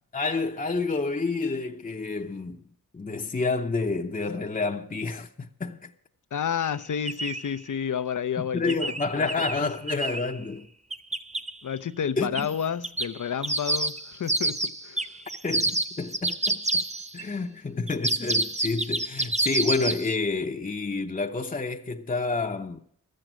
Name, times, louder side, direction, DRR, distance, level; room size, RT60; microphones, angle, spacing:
voice 1, 0.1-5.9 8.5-10.7 12.2-12.5 15.4-16.6 17.1-22.8, left 3 dB, 25° left, 0.8 m, -29 dB
voice 2, 6.3-9.3 9.6-9.7 11.6-15.0, left 8 dB, 60° left, 0.7 m, -30 dB
sound 1, 6.6-6.7 7.0-7.5 8.7-10.3 10.9-11.5 12.3-12.5 12.8-17.2 17.9-20.1, right 2 dB, 20° right, 0.8 m, -28 dB
13.0 x 7.7 x 9.1 m
cardioid pair, 60°, 34 cm